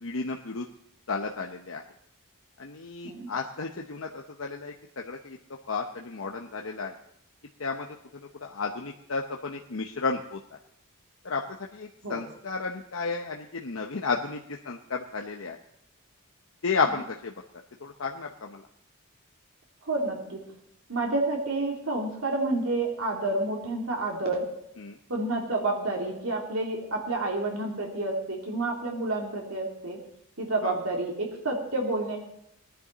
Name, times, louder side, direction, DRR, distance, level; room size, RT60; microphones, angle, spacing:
voice 1, 0.0-0.7 1.1-1.8 2.6-5.4 5.7-6.9 7.6-7.9 8.4-10.4 11.2-15.6 16.6-17.3 17.8-18.6 24.8-25.0 30.6-30.7, left 4 dB, 65° left, 2 dB, 0.9 m, -32 dB
voice 2, 19.8-20.4 20.9-24.5 25.1-30.0 30.4-32.2, right 2 dB, 75° right, 0 dB, 3.1 m, -29 dB
19.0 x 10.5 x 4.1 m, 0.76 s
head